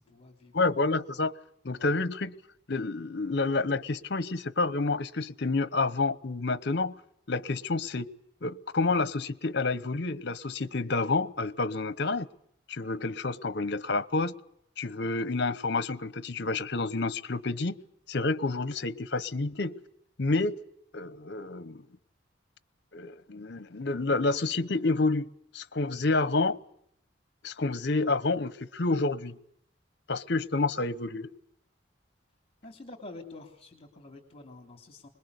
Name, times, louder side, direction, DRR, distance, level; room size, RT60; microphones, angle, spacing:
voice 1, 0.0-0.5 1.8-1.9 32.6-35.1, left 2 dB, 30° left, 3.2 m, -47 dB
voice 2, 0.5-1.4 1.6-2.3 2.7-6.9 7.3-8.1 8.4-12.3 12.7-14.3 14.8-17.8 18.1-19.8 20.2-20.6 20.9-21.8 22.9-26.6 27.4-29.4 30.1-31.3, left 3 dB, 60° left, 0.9 m, -29 dB
25.5 x 21.0 x 8.2 m
head